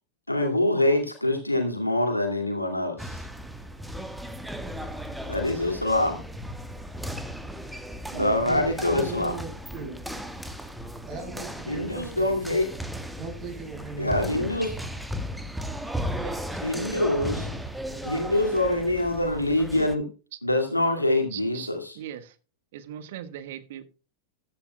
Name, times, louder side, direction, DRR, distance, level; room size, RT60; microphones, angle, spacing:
voice 1, 0.3-3.2 5.3-6.2 8.1-9.4 11.7-12.7 14.0-14.7 16.6-17.5 18.0-20.1 20.4-21.9, left 1 dB, 85° left, 2.3 m, -25 dB
sound 1, 3.0-20.0, equal, 5° right, 1.3 m, -36 dB
voice 2, 8.1-10.0 11.0-12.4 13.2-14.5, right 3 dB, 30° right, 6.7 m, -38 dB
voice 3, 21.3-22.3 22.7-23.8, right 11 dB, 55° right, 1.3 m, -40 dB
14.5 x 11.5 x 2.2 m
figure-of-eight pair, 90°, 0 cm